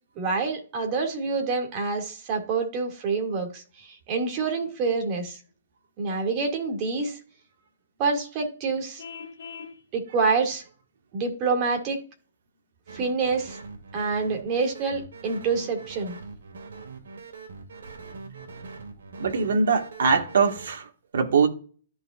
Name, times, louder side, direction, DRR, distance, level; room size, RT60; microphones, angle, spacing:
voice 1, 0.2-5.4 6.0-7.2 8.0-9.0 9.9-10.6 11.1-12.0 12.9-13.6 13.9-16.2, right 4 dB, 30° right, 2.3 m, -27 dB
Vehicle horn car horn honking, 9.0-9.8, left 6 dB, 65° left, 1.8 m, -40 dB
sound 1, 12.9-20.7, right 4 dB, 85° right, 2.3 m, -42 dB
voice 2, 18.2-18.7 19.2-21.5, right 5 dB, 65° right, 1.8 m, -23 dB
13.5 x 5.3 x 2.5 m
hypercardioid pair, 160°, 0 cm